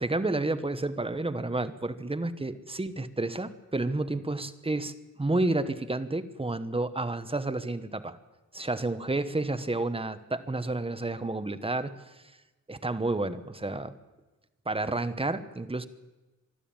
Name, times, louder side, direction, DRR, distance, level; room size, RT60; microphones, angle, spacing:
voice 1, 0.0-8.2 8.5-11.9 12.7-13.9 14.6-15.9, right 2 dB, 20° right, 11 dB, 1.1 m, -30 dB
24.5 x 12.5 x 8.8 m, 1.1 s
wide cardioid pair, 145°, 31 cm